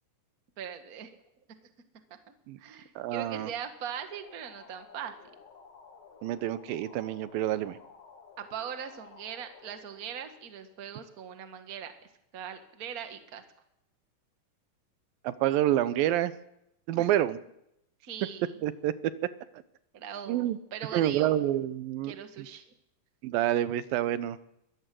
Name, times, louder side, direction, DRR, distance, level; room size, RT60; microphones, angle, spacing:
voice 1, 0.6-1.1 2.6-5.1 8.4-11.9 12.3-13.4 17.0-17.1 18.0-18.5 19.9-21.3 22.0-22.6, right 8 dB, 40° right, 7 dB, 1.3 m, -40 dB
voice 2, 3.0-3.5 6.2-7.8 15.2-16.3 16.9-17.4 18.6-18.9 20.3-20.6 20.9-22.1 23.2-24.4, right 13 dB, 85° right, 14 dB, 2.7 m, -28 dB
sound 1, 3.9-11.2, left 5 dB, 50° left, 2.7 m, -54 dB
22.5 x 15.0 x 7.7 m, 0.81 s
omnidirectional pair, 4.0 m